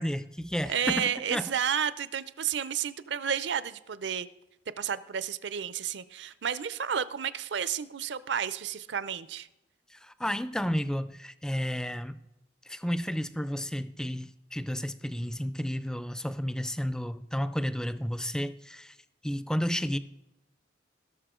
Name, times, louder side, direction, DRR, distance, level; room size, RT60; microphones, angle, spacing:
voice 1, 0.0-1.5 10.0-12.2 12.7-18.9 19.2-20.0, equal, 5° left, 14 dB, 0.3 m, -32 dB
voice 2, 0.7-4.3 4.8-9.5, right 8 dB, 70° right, 16 dB, 0.5 m, -31 dB
17.5 x 6.6 x 3.7 m, 0.93 s
head